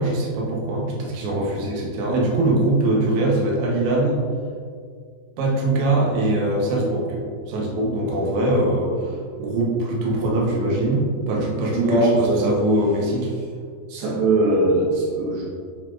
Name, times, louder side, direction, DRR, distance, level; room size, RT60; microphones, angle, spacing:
voice 1, 0.0-4.2 5.4-7.2 7.5-13.3, right 2 dB, 65° right, -3 dB, 2.2 m, -22 dB
voice 2, 11.7-12.5 13.9-15.4, right 2 dB, 80° right, -9 dB, 3.2 m, -20 dB
8.0 x 5.7 x 2.5 m, 2.1 s
omnidirectional pair, 4.3 m